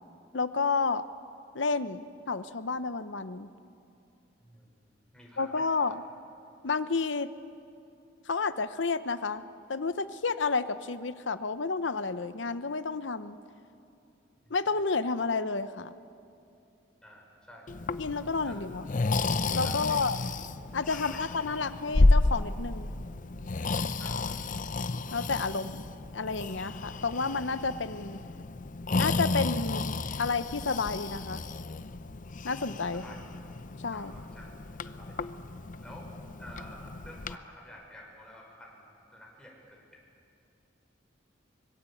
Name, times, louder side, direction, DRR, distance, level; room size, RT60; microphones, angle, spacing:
voice 1, 0.3-1.0 1.5-3.5 5.4-6.0 6.6-7.3 8.3-9.4 9.7-13.4 14.5-15.9 18.0-18.9 19.5-20.2 20.7-22.9 25.1-25.8 26.1-28.2 28.9-29.8 30.2-31.4 32.4-33.0 33.8-34.1, left 4 dB, 75° left, 13 dB, 0.9 m, -30 dB
voice 2, 4.4-4.8 5.1-6.0 14.4-14.6 17.0-17.8 18.5-18.6 19.6-20.2 20.9-21.2 24.0-24.4 32.9-33.2 33.9-34.5 35.0-35.3 35.8-36.1 36.4-40.0, equal, 5° left, -2 dB, 5.6 m, -50 dB
Breathing, 17.7-37.4, left 2 dB, 45° left, 0.7 m, -31 dB
24.5 x 22.0 x 8.6 m, 2.6 s
head